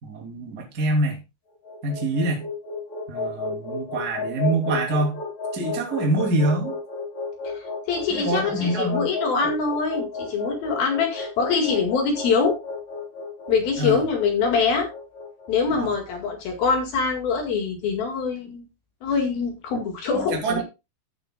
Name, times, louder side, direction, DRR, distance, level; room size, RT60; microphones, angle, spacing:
voice 1, 0.0-1.2 1.8-2.4 3.1-5.2 5.5-6.7 8.1-9.1 13.8-14.0 15.7-15.9 20.1-20.6, right 2 dB, 25° right, 0 dB, 2.5 m, -25 dB
sound 1, 1.5-15.8, left 3 dB, 30° left, 3.5 m, -32 dB
voice 2, 7.4-12.6 13.5-14.9 15.5-18.7 19.0-20.6, left 5 dB, 60° left, 3 dB, 3.3 m, -24 dB
15.0 x 7.9 x 2.3 m, 0.25 s
omnidirectional pair, 5.5 m